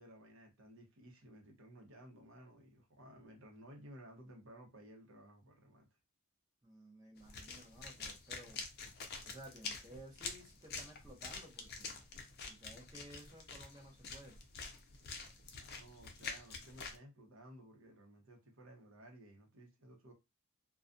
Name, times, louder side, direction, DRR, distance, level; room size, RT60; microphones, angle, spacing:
voice 1, 0.0-5.9 15.5-20.1, right 1 dB, 65° right, 0.9 m, -57 dB
voice 2, 6.6-8.6 9.2-12.0 12.5-14.4, right 1 dB, 20° right, 0.8 m, -56 dB
sound 1, 7.2-17.0, left 4 dB, 50° left, 0.5 m, -47 dB
2.3 x 2.2 x 2.5 m
head